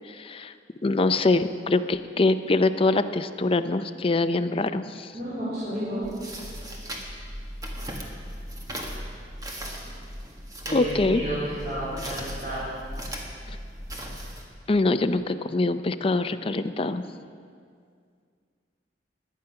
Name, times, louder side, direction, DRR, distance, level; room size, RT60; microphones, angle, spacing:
voice 1, 0.1-0.5 0.8-5.1 10.7-11.2 12.0-12.1 14.7-17.2, left 2 dB, 30° left, 10 dB, 0.5 m, -24 dB
voice 2, 5.1-6.1 10.7-12.7, equal, 55° right, -11 dB, 3.7 m, -31 dB
sound 1, 6.0-14.4, equal, 20° right, 1.6 m, -37 dB
17.5 x 10.5 x 5.8 m, 2.2 s
head